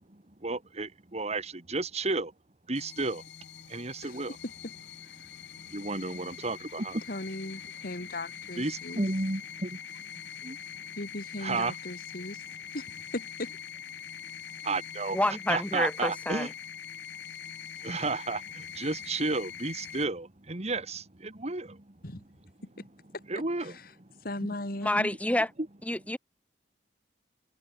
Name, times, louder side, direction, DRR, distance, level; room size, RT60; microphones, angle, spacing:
voice 1, 0.1-2.3 2.7-3.2 3.7-4.4 5.7-7.0 8.6-10.1 10.4-10.6 11.4-11.8 14.6-15.2 15.5-16.5 17.8-21.9 22.8-22.9 23.3-24.1, right 3 dB, 40° right, 2.1 m, -33 dB
sound 1, 2.7-20.0, left 8 dB, 75° left, 1.8 m, -43 dB
voice 2, 4.0-4.7 7.1-9.0 11.0-12.4 12.7-12.9 13.1-13.6 22.0-22.2 23.6-23.7 24.2-25.1, left 1 dB, 55° left, 2.6 m, -37 dB
voice 3, 15.1-16.5 24.8-25.5 25.8-26.2, left 1 dB, 10° left, 2.6 m, -28 dB
head